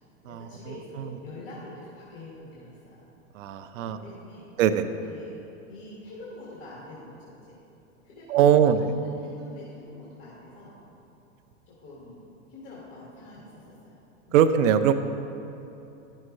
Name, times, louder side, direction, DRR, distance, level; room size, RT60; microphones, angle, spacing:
voice 1, 0.2-3.0 3.7-4.5 4.9-5.4 5.7-7.6 8.0-10.8 11.7-12.2 12.5-14.0 14.3-14.4, left 2 dB, 35° left, -7 dB, 1.9 m, -45 dB
voice 2, 3.3-4.0 4.6-4.8 8.3-8.8 14.3-14.9, right 9 dB, 75° right, 10 dB, 0.6 m, -20 dB
10.5 x 6.5 x 3.2 m, 2.9 s
supercardioid pair, 125°, 39 cm